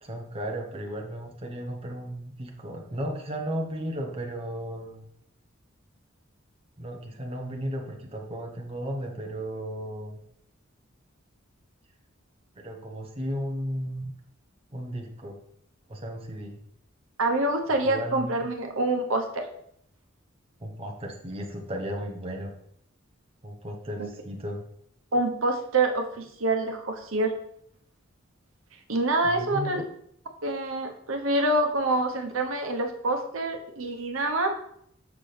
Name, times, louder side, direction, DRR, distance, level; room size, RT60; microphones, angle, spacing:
voice 1, 0.0-5.1 6.8-10.2 12.5-14.1 14.7-15.4 15.9-16.6 17.8-18.4 20.6-22.5 23.4-24.6 29.2-29.8, equal, 30° right, 1 dB, 1.0 m, -35 dB
voice 2, 17.2-19.4 24.0-24.1 25.1-27.3 28.9-29.8 30.4-34.5, right 2 dB, 80° right, 4 dB, 1.0 m, -26 dB
6.0 x 5.9 x 3.3 m, 0.70 s
head